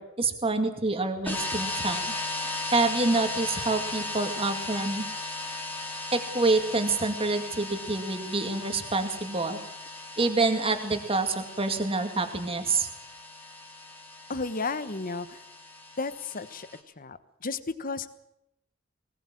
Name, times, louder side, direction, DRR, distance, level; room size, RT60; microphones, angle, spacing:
voice 1, 0.0-2.1 2.7-5.1 6.1-9.6 10.2-12.9, right 3 dB, 25° right, 6 dB, 2.3 m, -27 dB
sound 1, 1.2-16.8, left 2 dB, 10° left, 3.2 m, -37 dB
voice 2, 14.3-15.4 16.0-16.7 17.0-18.1, left 4 dB, 40° left, 13 dB, 1.1 m, -33 dB
20.0 x 20.0 x 7.6 m, 0.83 s
head